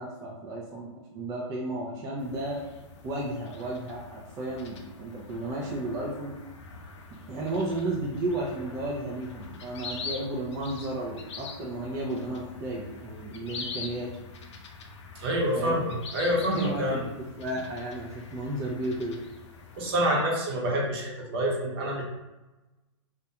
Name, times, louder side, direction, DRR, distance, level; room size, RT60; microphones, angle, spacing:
voice 1, 0.0-2.6 3.0-6.3 7.3-14.1 15.5-15.8 16.5-19.2, right 1 dB, 20° right, -3 dB, 0.3 m, -33 dB
sound 1, 2.2-20.0, left 4 dB, 65° left, 0.5 m, -44 dB
voice 2, 15.1-17.0 19.8-22.0, equal, 50° right, -2 dB, 0.8 m, -27 dB
2.2 x 2.2 x 2.8 m, 1.1 s
hypercardioid pair, 135°, 16 cm